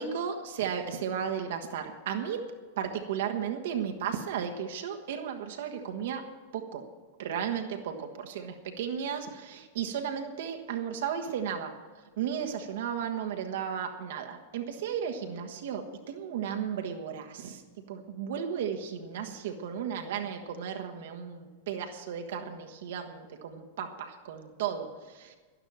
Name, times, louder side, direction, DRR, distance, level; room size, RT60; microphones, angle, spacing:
voice 1, 0.0-2.5 2.8-6.8 7.2-11.8 12.2-17.6 17.9-25.4, right 8 dB, 55° right, 4 dB, 1.3 m, -34 dB
12.0 x 11.5 x 7.5 m, 1.4 s
figure-of-eight pair, 90°, 0 cm